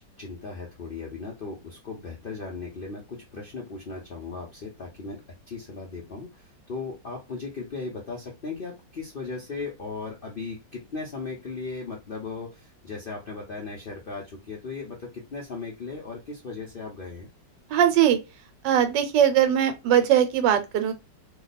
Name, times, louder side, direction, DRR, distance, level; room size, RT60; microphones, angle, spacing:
voice 1, 0.2-17.3, left 4 dB, 60° left, 0.5 m, -37 dB
voice 2, 17.7-18.2 18.6-20.9, right 10 dB, 85° right, 1.3 m, -20 dB
2.9 x 2.2 x 4.0 m
omnidirectional pair, 1.9 m